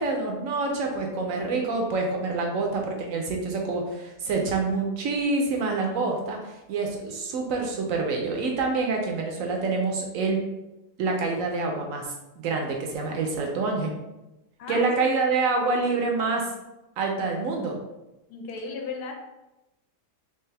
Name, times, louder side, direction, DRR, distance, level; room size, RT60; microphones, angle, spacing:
voice 1, 0.0-6.4 6.7-10.4 11.0-12.1 12.4-13.9 14.7-16.5 17.0-17.8, right 3 dB, 65° right, 1 dB, 0.9 m, -26 dB
voice 2, 14.6-14.9 18.3-19.1, left 4 dB, 75° left, 2 dB, 1.1 m, -35 dB
3.4 x 3.0 x 3.3 m, 0.99 s
omnidirectional pair, 1.8 m